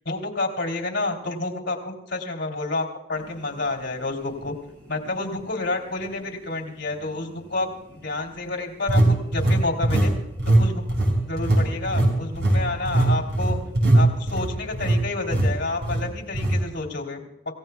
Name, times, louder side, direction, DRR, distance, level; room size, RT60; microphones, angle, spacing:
voice 1, 0.0-4.5 4.9-10.1 10.5-10.8 11.2-13.6 13.9-17.2, left 2 dB, 75° left, -1 dB, 3.1 m, -29 dB
sound 1, 4.4-4.5 5.2-5.3 8.9-10.1 10.4-10.6 10.9-15.0 15.3-15.5 15.8-16.0 16.3-16.6, right 1 dB, 70° right, 5.2 m, -20 dB
27.0 x 16.5 x 2.3 m, 0.84 s
head